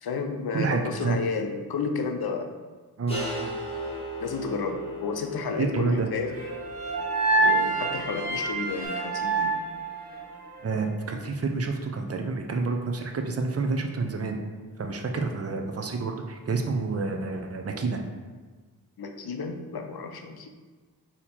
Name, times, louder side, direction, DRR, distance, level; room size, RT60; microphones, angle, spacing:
voice 1, 0.0-2.5 4.2-6.3 7.4-9.6 15.1-15.2 19.0-20.5, left 4 dB, 70° left, 5 dB, 0.6 m, -32 dB
voice 2, 0.5-1.2 3.0-3.5 5.6-6.1 10.6-14.4 14.8-18.0, right 4 dB, 40° right, 4 dB, 0.5 m, -29 dB
sound 1, 3.1-8.9, right 1 dB, 15° left, 1.1 m, -37 dB
sound 2, 6.3-10.6, right 3 dB, 85° right, 1.2 m, -27 dB
4.2 x 2.9 x 4.2 m, 1.4 s
wide cardioid pair, 80°, 38 cm